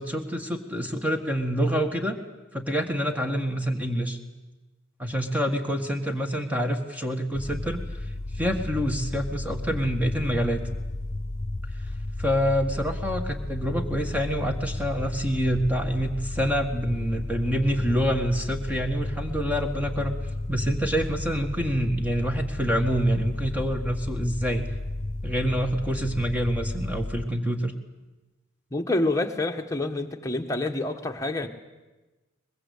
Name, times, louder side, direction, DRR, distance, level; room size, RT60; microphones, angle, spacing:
voice 1, 0.0-2.2 2.5-4.2 5.0-7.8 8.3-10.6 12.2-20.1 20.5-24.6 25.2-27.7, equal, 5° right, 5 dB, 1.7 m, -26 dB
sound 1, 7.3-27.3, left 2 dB, 35° left, 0.8 m, -33 dB
voice 2, 28.7-31.5, left 2 dB, 15° left, 3 dB, 1.4 m, -27 dB
22.5 x 21.0 x 8.4 m, 1.1 s
head